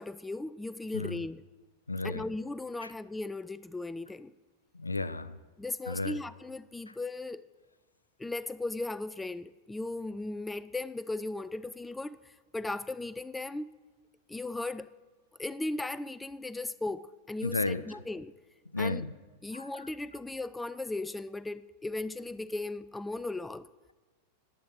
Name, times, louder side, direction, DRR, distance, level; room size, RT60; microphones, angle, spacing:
voice 1, 0.0-1.4 2.0-4.3 5.6-7.5 8.2-12.2 12.5-13.7 14.3-14.9 15.4-18.3 18.8-19.1 19.4-23.7, left 2 dB, 10° left, 0.3 m, -37 dB
voice 2, 1.9-2.2 2.8-2.9 4.7-5.4 5.9-6.2 17.4-17.8 18.7-19.1 19.5-19.7, left 2 dB, 80° left, 0.5 m, -33 dB
11.0 x 10.0 x 6.6 m
figure-of-eight pair, 90°, 0 cm